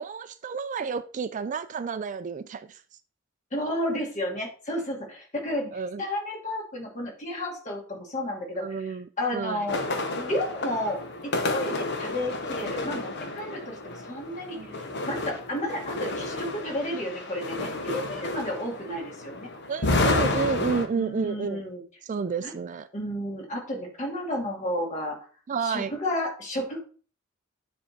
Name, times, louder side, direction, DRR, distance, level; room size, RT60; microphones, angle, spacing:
voice 1, 0.0-2.8 5.7-6.0 8.6-9.7 14.5-14.8 19.7-21.7 22.0-22.9 25.5-26.0, right 5 dB, 40° right, 0.4 m, -31 dB
voice 2, 3.5-5.7 6.0-8.8 9.2-9.8 10.2-14.6 15.0-19.5 20.9-21.8 22.4-22.5 22.9-25.2 25.6-26.8, left 1 dB, 40° left, 2.5 m, -32 dB
sound 1, 9.7-20.9, left 2 dB, 60° left, 1.0 m, -30 dB
9.5 x 3.5 x 4.4 m
head